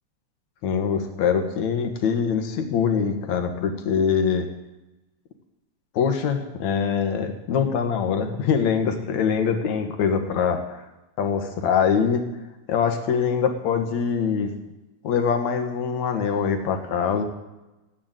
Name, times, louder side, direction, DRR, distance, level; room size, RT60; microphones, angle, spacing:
voice 1, 0.6-4.5 5.9-10.8 11.2-12.2 12.7-14.5 15.0-17.2, left 6 dB, 75° left, 6 dB, 2.8 m, -23 dB
16.0 x 8.5 x 9.1 m, 1.0 s
omnidirectional pair, 3.3 m